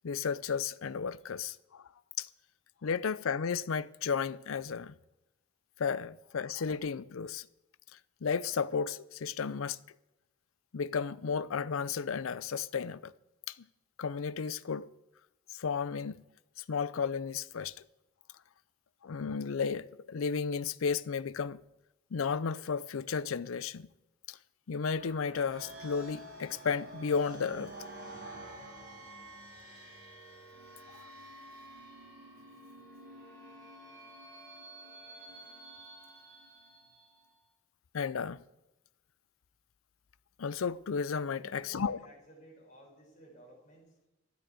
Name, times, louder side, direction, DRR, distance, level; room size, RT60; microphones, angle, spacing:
voice 1, 0.0-1.9 2.2-2.3 2.8-4.9 5.8-7.5 8.2-9.8 10.7-13.1 13.5-13.6 14.0-14.9 15.5-16.2 16.6-17.7 19.0-21.6 22.1-23.9 24.3-24.4 24.7-27.7 37.9-38.4 40.4-42.0, left 6 dB, 85° left, 0.5 m, -33 dB
sound 1, 24.8-37.3, right 1 dB, 50° right, 5.9 m, -49 dB
voice 2, 41.4-44.0, equal, 40° left, 6.0 m, -55 dB
13.5 x 9.5 x 8.1 m
head